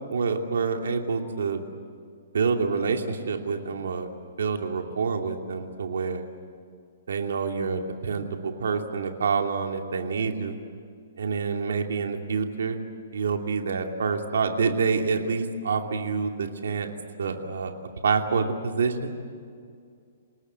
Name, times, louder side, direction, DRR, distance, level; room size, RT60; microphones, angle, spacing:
voice 1, 0.1-1.6 2.3-4.1 4.4-6.2 7.1-10.6 11.2-12.8 13.1-16.9 17.2-17.7 18.0-19.1, right 5 dB, 85° right, 4 dB, 2.8 m, -27 dB
29.0 x 19.0 x 8.2 m, 2.2 s
hypercardioid pair, 170°, 0 cm